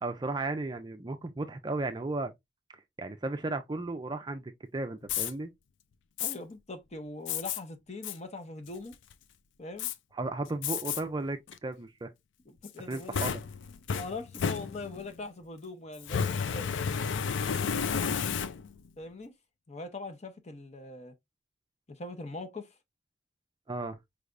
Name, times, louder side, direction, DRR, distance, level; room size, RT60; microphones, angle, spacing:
voice 1, 0.0-2.3 3.0-5.5 10.2-12.1 12.9-13.4 23.7-24.0, right 2 dB, 25° right, 0.4 m, -35 dB
Fire, 5.0-5.3 6.2-6.3 7.3-7.6 8.0-8.2 8.7-9.1 9.8-9.9 10.6-11.0 11.5-11.6 12.6-15.1 16.0-18.9, left 6 dB, 90° left, 0.4 m, -32 dB
voice 2, 6.2-9.0 9.6-9.9 12.5-13.2 13.9-16.7 19.0-19.3 19.7-21.1 21.9-22.7, left 2 dB, 35° left, 0.8 m, -41 dB
4.8 x 3.3 x 2.4 m
head